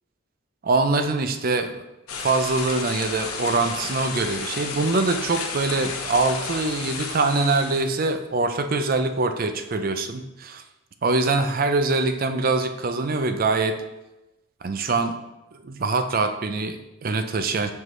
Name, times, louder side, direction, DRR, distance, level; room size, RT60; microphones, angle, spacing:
voice 1, 0.6-1.9 2.2-10.6 11.0-13.8 14.6-15.1 15.6-17.7, right 3 dB, 45° right, 7 dB, 0.5 m, -23 dB
sound 1, 2.1-7.8, left 5 dB, 85° left, 0.8 m, -32 dB
7.4 x 4.7 x 3.1 m, 1.0 s
head